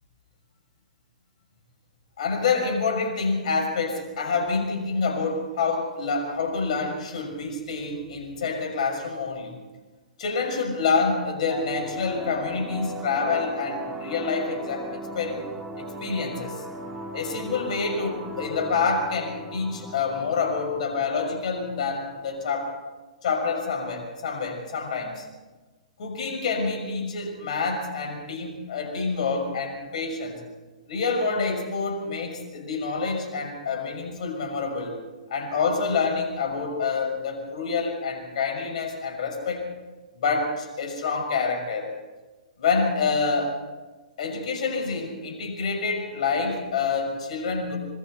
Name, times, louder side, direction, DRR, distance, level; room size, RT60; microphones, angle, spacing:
voice 1, 2.2-9.6 10.2-15.4 15.8-16.6 17.1-22.8 23.2-25.3 26.0-30.4 30.9-34.9 35.3-39.7 40.2-41.9 42.6-43.6 44.2-47.8, left 4 dB, 60° left, 2 dB, 6.4 m, -27 dB
sound 1, 11.5-22.5, equal, 10° right, 4.0 m, -37 dB
26.0 x 23.0 x 4.4 m, 1.2 s
hypercardioid pair, 115°, 4 cm